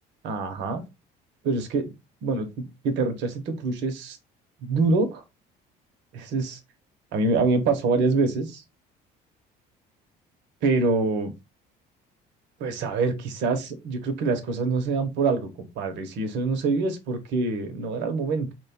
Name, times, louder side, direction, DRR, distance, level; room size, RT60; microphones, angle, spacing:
voice 1, 0.2-0.8 1.4-1.9 2.2-4.2 4.6-5.1 6.1-6.6 7.1-8.6 10.6-11.3 12.6-18.5, right 3 dB, 70° right, 6 dB, 0.9 m, -25 dB
3.0 x 2.3 x 4.2 m, 0.24 s
supercardioid pair, 95°, 19 cm